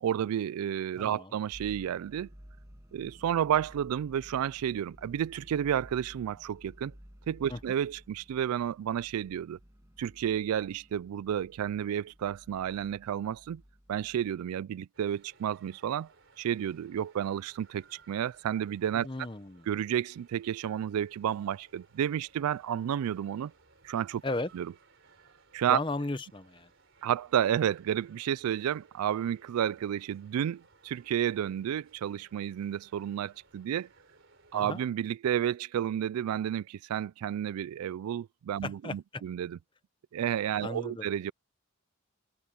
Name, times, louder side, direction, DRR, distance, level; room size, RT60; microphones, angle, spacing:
voice 1, 0.0-2.3 2.9-6.9 7.3-9.6 10.0-13.6 13.9-16.1 16.4-19.1 19.7-23.5 23.8-24.2 24.5-24.7 25.5-25.8 27.0-33.9 34.5-39.6 40.1-41.3, right 9 dB, 90° right, 0.3 m, -31 dB
voice 2, 1.0-1.4 7.5-7.6 19.0-19.7 24.2-24.5 25.7-26.7 34.5-34.8 38.6-39.2 40.6-41.1, left 2 dB, 20° left, 0.8 m, -35 dB
sound 1, 1.5-14.4, equal, 15° right, 1.7 m, -54 dB
sound 2, 14.9-34.9, right 4 dB, 60° right, 3.9 m, -62 dB
head